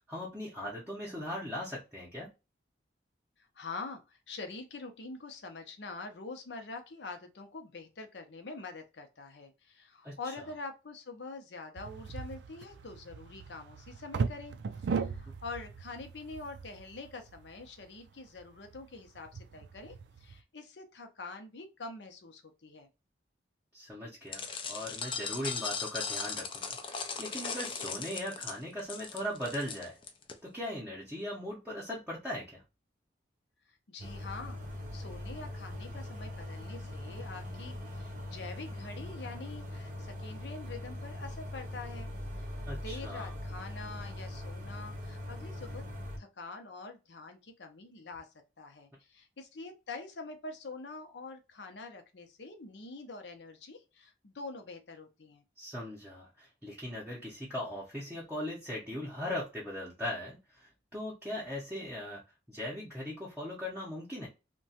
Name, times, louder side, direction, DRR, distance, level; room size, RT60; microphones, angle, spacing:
voice 1, 0.0-2.3 10.0-10.3 23.7-30.0 30.4-32.6 42.7-43.3 55.6-62.2 62.5-64.3, left 1 dB, 10° right, -5 dB, 0.7 m, -39 dB
voice 2, 3.4-22.9 33.9-42.1 42.3-45.8 46.2-48.3 48.6-55.4, left 3 dB, 70° left, 6 dB, 0.7 m, -45 dB
sound 1, 11.8-20.4, right 5 dB, 65° right, 0.3 m, -39 dB
sound 2, 24.3-30.3, left 6 dB, 25° left, 0.4 m, -38 dB
sound 3, 34.0-46.2, left 1 dB, 45° right, 0.7 m, -41 dB
2.9 x 2.2 x 2.7 m, 0.27 s
head